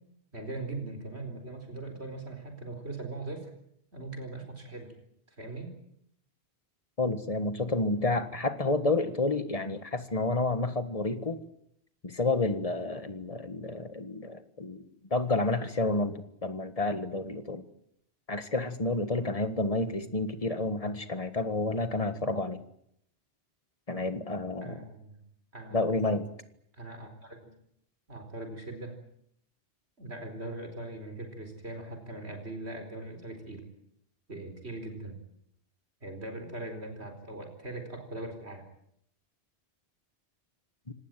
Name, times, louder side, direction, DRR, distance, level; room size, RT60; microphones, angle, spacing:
voice 1, 0.3-3.5 3.9-5.0 5.3-5.7 24.6-25.2 25.5-25.8 26.7-27.5 28.1-29.0 30.0-33.7 34.3-35.2 36.0-38.6, right 2 dB, 70° right, 6 dB, 4.7 m, -40 dB
voice 2, 7.0-11.4 12.0-17.6 18.3-22.6 23.9-24.8 25.7-26.3, left 2 dB, 30° left, 11 dB, 1.7 m, -30 dB
26.0 x 19.0 x 9.2 m, 0.73 s
omnidirectional pair, 1.1 m